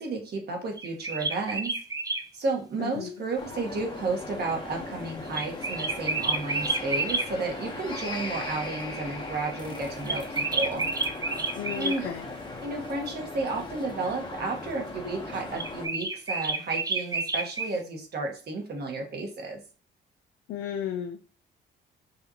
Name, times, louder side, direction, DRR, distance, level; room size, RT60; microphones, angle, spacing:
voice 1, 0.0-1.7 2.3-10.8 11.8-12.1 12.6-19.6, right 3 dB, 55° right, 2 dB, 1.4 m, -32 dB
sound 1, 0.8-2.2 5.3-7.3 10.1-12.0 15.6-17.7, right 3 dB, 20° right, 0.5 m, -30 dB
voice 2, 2.8-3.1 11.6-12.3 20.5-21.2, left 9 dB, 85° left, 4 dB, 0.6 m, -33 dB
sound 2, 3.4-15.9, left 2 dB, 25° left, 1.0 m, -38 dB
5.5 x 2.5 x 2.9 m, 0.38 s
cardioid pair, 90°, 20 cm